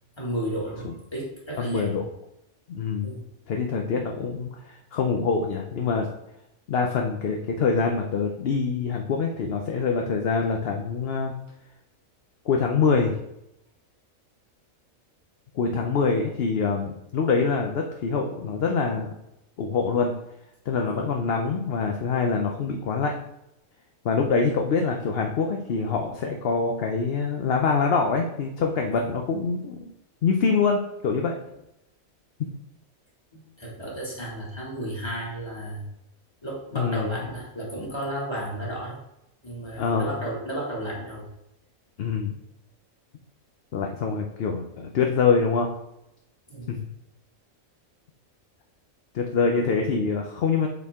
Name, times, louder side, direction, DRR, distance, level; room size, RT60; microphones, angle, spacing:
voice 1, 0.2-2.0 3.0-3.2 20.9-21.0 29.0-29.1 33.3-35.9 36.4-39.0 39.4-41.3 46.5-46.8, right 1 dB, 20° left, -4 dB, 1.9 m, -33 dB
voice 2, 1.6-2.0 2.7-3.1 3.5-6.1 6.7-11.3 12.4-13.2 15.5-19.1 19.6-20.1 20.7-23.1 24.0-29.9 30.2-31.3 36.7-37.1 39.8-40.1 42.0-42.3 43.7-45.7 46.7-46.8 49.1-50.7, left 5 dB, 55° left, 2 dB, 0.8 m, -25 dB
8.2 x 4.4 x 3.6 m, 0.85 s
omnidirectional pair, 1.4 m